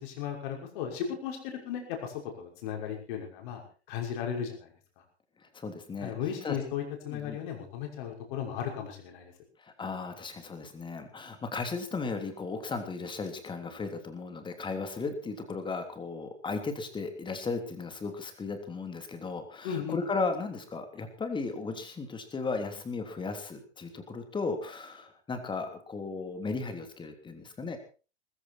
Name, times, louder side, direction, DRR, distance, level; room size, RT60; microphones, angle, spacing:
voice 1, 0.0-3.6 3.9-4.7 6.0-9.3 19.6-20.0, left 8 dB, 50° left, 2 dB, 5.9 m, -35 dB
voice 2, 5.4-6.1 6.4-6.6 7.1-7.4 9.6-27.8, left 4 dB, 15° left, 6 dB, 3.3 m, -36 dB
20.0 x 15.0 x 4.4 m, 0.36 s
figure-of-eight pair, 95°, 33 cm